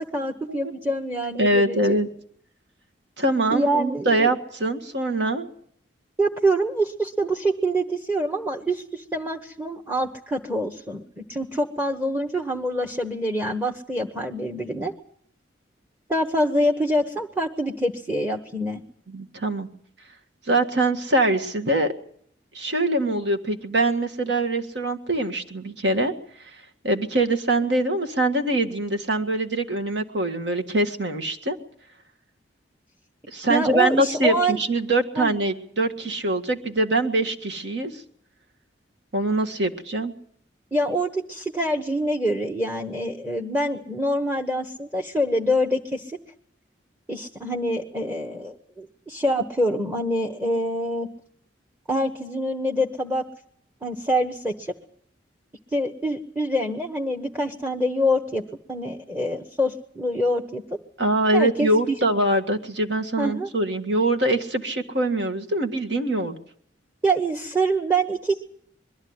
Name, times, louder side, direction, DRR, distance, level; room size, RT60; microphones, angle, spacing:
voice 1, 0.0-2.0 3.5-4.3 6.2-14.9 16.1-18.8 33.5-34.6 35.2-35.3 40.7-46.2 47.1-51.1 51.9-53.2 53.8-54.7 55.7-58.4 58.7-60.8 61.3-61.9 63.2-63.5 67.0-68.4, right 1 dB, 10° right, 3 dB, 1.2 m, -25 dB
voice 2, 1.4-2.1 3.2-5.5 19.1-19.7 20.5-21.9 22.5-26.1 26.8-31.6 33.3-38.0 39.1-40.1 61.0-66.4, right 2 dB, 70° right, 5 dB, 1.8 m, -23 dB
22.5 x 13.5 x 9.6 m, 0.65 s
head